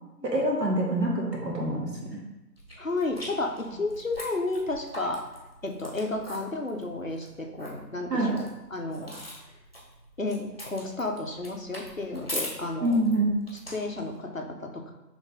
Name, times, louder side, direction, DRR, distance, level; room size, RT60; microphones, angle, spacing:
voice 1, 0.2-2.1 8.1-8.3 12.8-13.3, right 1 dB, 70° right, -2 dB, 1.4 m, -26 dB
sound 1, 2.6-14.2, equal, 35° left, 0.9 m, -42 dB
voice 2, 2.8-5.2 5.6-9.1 10.2-13.0 13.7-14.9, left 2 dB, 55° left, 3 dB, 0.5 m, -32 dB
5.2 x 3.1 x 2.6 m, 1.0 s
figure-of-eight pair, 175°, 50 cm